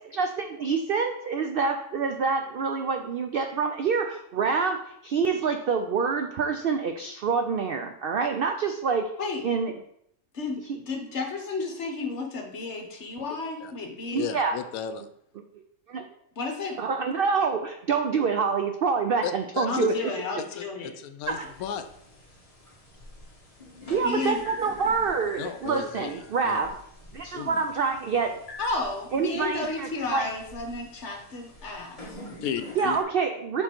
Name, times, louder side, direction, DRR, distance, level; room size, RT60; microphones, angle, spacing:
voice 1, 0.0-9.1 9.4-9.7 14.1-14.6 15.9-16.1 16.8-20.0 20.4-20.5 21.3-21.5 23.9-26.8 27.1-28.4 29.1-30.3 32.8-33.6, right 5 dB, 75° right, 6 dB, 0.5 m, -27 dB
voice 2, 10.3-14.2 16.4-16.8 19.7-20.9 24.0-24.4 28.6-32.2, left 3 dB, 55° left, 3 dB, 1.3 m, -32 dB
voice 3, 14.1-15.1 19.2-19.9 20.4-21.9 25.4-26.6 27.3-27.6 32.4-33.0, left 8 dB, 85° left, 10 dB, 1.1 m, -34 dB
sound 1, 21.2-33.0, left 2 dB, 25° left, 1.4 m, -46 dB
6.6 x 3.8 x 4.4 m, 0.72 s
omnidirectional pair, 1.5 m